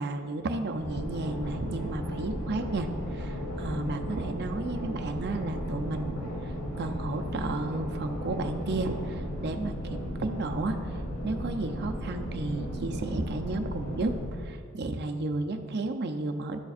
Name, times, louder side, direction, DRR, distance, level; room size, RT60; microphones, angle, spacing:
voice 1, 0.0-16.6, right 2 dB, 50° right, 6 dB, 0.6 m, -33 dB
sound 1, 0.8-14.4, equal, 85° left, 2.1 m, -35 dB
12.5 x 6.9 x 2.5 m, 2.1 s
head